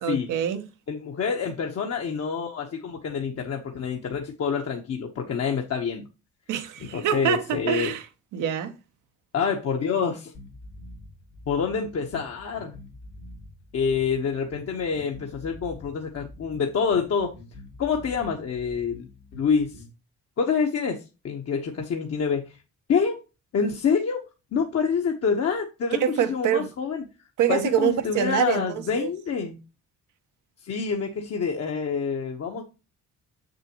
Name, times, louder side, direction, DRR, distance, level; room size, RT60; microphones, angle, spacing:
voice 1, 0.0-0.7 6.5-8.1 8.3-8.7 26.0-26.7 27.4-29.1, right 10 dB, 85° right, 1.0 m, -25 dB
voice 2, 0.9-6.1 6.9-7.9 9.3-10.3 11.5-12.8 13.7-17.3 17.8-19.1 19.4-19.8 20.4-22.6 22.9-23.2 23.5-24.2 24.5-27.0 27.5-29.6 30.6-32.6, left 6 dB, 55° left, 1.1 m, -27 dB
sound 1, 10.3-19.9, left 1 dB, 80° left, 2.5 m, -46 dB
6.9 x 6.6 x 2.9 m
cardioid pair, 90°, 30 cm